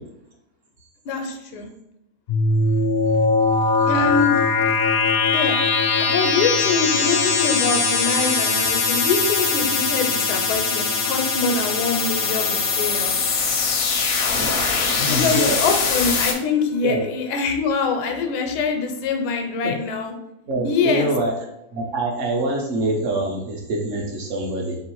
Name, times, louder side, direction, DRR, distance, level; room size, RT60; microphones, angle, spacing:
voice 1, 1.1-1.7 3.9-4.4 5.3-5.6 6.0-13.1 15.1-20.1 20.6-21.1, left 4 dB, 90° left, 4 dB, 1.2 m, -24 dB
sound 1, 2.3-16.3, left 4 dB, 65° left, 0.6 m, -21 dB
voice 2, 3.8-4.1 15.0-15.6 16.8-17.0 19.6-19.7 20.5-21.3 21.7-24.8, right 1 dB, 60° right, -1 dB, 1.0 m, -25 dB
3.1 x 3.0 x 4.5 m, 0.86 s
omnidirectional pair, 1.7 m